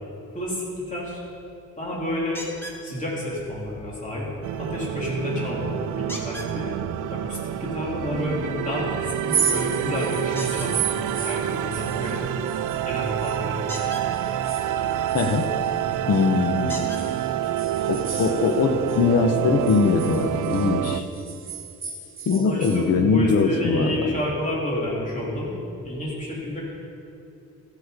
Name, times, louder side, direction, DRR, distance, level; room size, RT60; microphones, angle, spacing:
voice 1, 0.3-1.2 1.8-2.5 2.8-4.3 4.6-6.7 7.1-12.2 12.9-13.8 22.3-25.5 25.8-26.7, left 1 dB, 25° left, -5 dB, 3.1 m, -30 dB
sound 1, 2.3-2.8 6.1-6.5 10.3-10.7 13.6-14.1 15.7-15.8 16.7-17.0 18.0-18.1 18.6-18.7, equal, 5° left, 1.4 m, -36 dB
sound 2, 4.4-21.0, right 11 dB, 75° right, 0.5 m, -28 dB
sound 3, 9.2-13.4 13.7-16.3 16.7-19.0 19.3-22.8, right 7 dB, 40° right, 1.3 m, -33 dB
voice 2, 15.1-15.4 16.1-16.9 17.9-21.0 22.3-24.1, left 4 dB, 50° left, 4 dB, 1.0 m, -21 dB
14.0 x 8.2 x 5.1 m, 2.8 s
cardioid pair, 150°, 31 cm